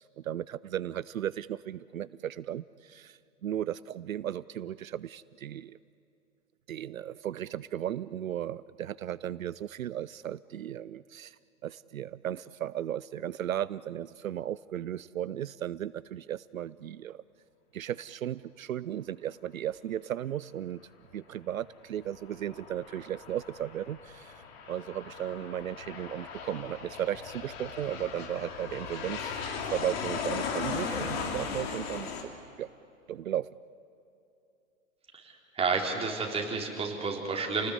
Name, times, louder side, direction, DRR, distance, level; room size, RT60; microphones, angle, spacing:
voice 1, 0.0-5.8 6.7-11.4 11.6-17.2 17.7-20.8 21.1-24.3 24.7-29.4 29.7-32.1 32.6-32.7 33.1-33.5, right 11 dB, 80° right, 18 dB, 0.6 m, -35 dB
Aircraft, 22.0-32.2, left 5 dB, 50° left, 3.1 m, -38 dB
voice 2, 35.1-37.7, right 4 dB, 15° right, 0 dB, 3.6 m, -31 dB
29.0 x 19.0 x 8.1 m, 2.7 s
figure-of-eight pair, 110°, 40 cm